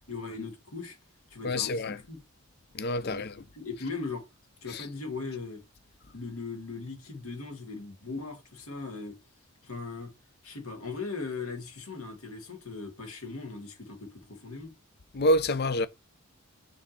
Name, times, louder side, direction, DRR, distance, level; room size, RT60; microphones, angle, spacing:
voice 1, 0.1-1.0 1.3-2.2 3.0-4.2 4.6-5.6 6.1-9.2 9.6-10.1 10.4-14.7, left 4 dB, 75° left, 2.4 m, -39 dB
voice 2, 1.4-2.0 2.7-3.3 4.7-4.8 15.1-15.9, left 1 dB, 45° left, 0.5 m, -27 dB
6.2 x 3.6 x 4.3 m
head